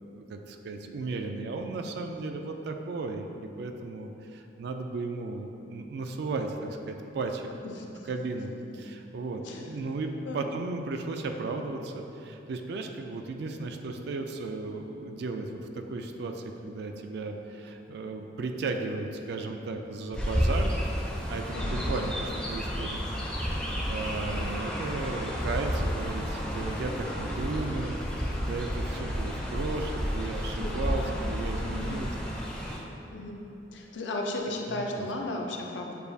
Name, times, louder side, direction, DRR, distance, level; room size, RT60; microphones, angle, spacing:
voice 1, 0.0-7.5 8.0-20.7 21.3-32.4 34.7-35.1, right 3 dB, 60° right, 5 dB, 0.3 m, -35 dB
voice 2, 7.6-8.1 9.4-9.7 10.2-10.5 21.5-21.9 30.6-31.3 31.6-32.0 33.1-33.4 33.7-36.0, left 1 dB, 80° left, 1 dB, 0.5 m, -35 dB
Chirp tweet, 20.1-32.8, equal, 5° left, 0.4 m, -31 dB
6.8 x 2.3 x 2.6 m, 3.0 s
head